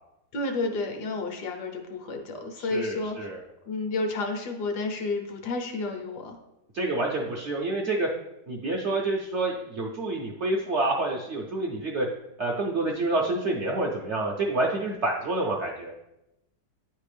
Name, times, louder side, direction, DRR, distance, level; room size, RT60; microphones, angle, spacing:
voice 1, 0.3-3.3 3.6-6.4, left 3 dB, 75° left, 4 dB, 1.4 m, -31 dB
voice 2, 2.6-3.4 6.7-8.1 8.5-12.1 12.4-15.9, right 2 dB, 65° right, -1 dB, 0.7 m, -28 dB
9.6 x 3.4 x 3.3 m, 0.90 s
omnidirectional pair, 1.8 m